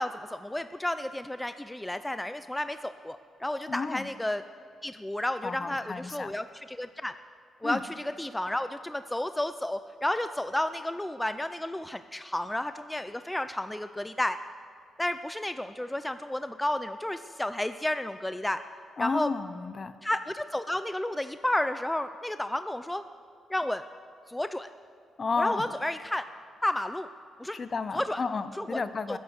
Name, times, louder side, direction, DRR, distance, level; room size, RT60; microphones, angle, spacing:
voice 1, 0.0-4.4 4.8-7.1 7.6-14.4 15.0-18.6 19.0-19.3 20.0-23.0 23.5-23.8 24.3-24.7 25.4-26.3 26.6-27.1 27.4-27.6 27.9-28.2 28.6-28.8 29.1-29.2, left 1 dB, 10° left, 11 dB, 0.5 m, -32 dB
voice 2, 3.7-4.1 5.4-6.3 7.6-7.8 19.0-19.9 25.2-25.8 27.5-29.2, left 4 dB, 40° left, 13 dB, 0.7 m, -32 dB
20.5 x 10.5 x 6.6 m, 2.1 s
cardioid pair, 90°, 0 cm